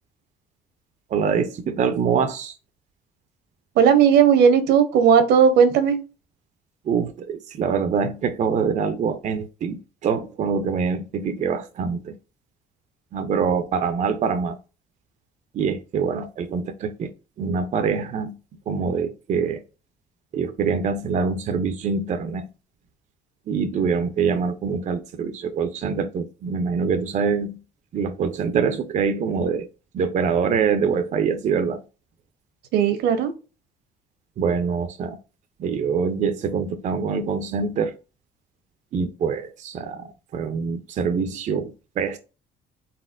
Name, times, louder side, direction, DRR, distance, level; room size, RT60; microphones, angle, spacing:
voice 1, 1.1-2.6 6.8-12.1 13.1-14.6 15.5-17.1 17.4-18.3 18.7-19.6 20.3-22.5 23.5-27.6 27.9-29.7 29.9-31.8 34.4-35.2 35.6-37.9 38.9-42.2, right 6 dB, 45° right, 0.5 m, -24 dB
voice 2, 3.8-6.0 32.7-33.3, right 7 dB, 80° right, 1.0 m, -16 dB
4.1 x 3.8 x 2.5 m
cardioid pair, 110°, 17 cm